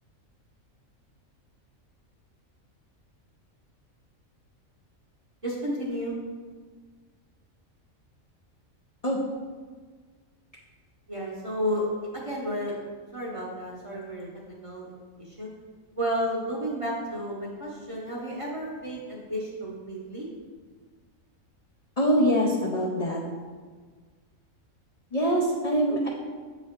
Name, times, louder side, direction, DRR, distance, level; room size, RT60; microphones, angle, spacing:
voice 1, 5.4-6.2 11.1-12.8 13.1-14.9 15.2-15.5 16.0-20.3, equal, 30° right, -5 dB, 0.7 m, -32 dB
voice 2, 22.0-23.2 25.1-26.1, equal, 45° left, -4 dB, 0.5 m, -24 dB
7.2 x 3.0 x 4.3 m, 1.5 s
omnidirectional pair, 1.4 m